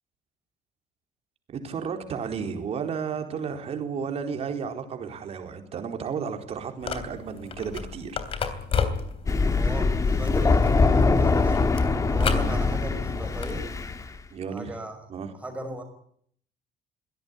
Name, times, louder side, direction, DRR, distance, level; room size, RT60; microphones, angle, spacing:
voice 1, 1.5-8.2 14.3-14.8 15.1-15.3, right 6 dB, 40° right, 6 dB, 4.4 m, -33 dB
sound 1, 6.8-13.7, left 6 dB, 35° left, 3.3 m, -33 dB
Thunder, 9.3-14.1, left 3 dB, 20° left, 1.9 m, -23 dB
voice 2, 9.5-11.6 12.1-13.6 14.5-15.0 15.4-15.8, right 1 dB, 10° right, 6 dB, 5.6 m, -37 dB
23.0 x 17.5 x 9.9 m, 0.65 s
cardioid pair, 160°, 16 cm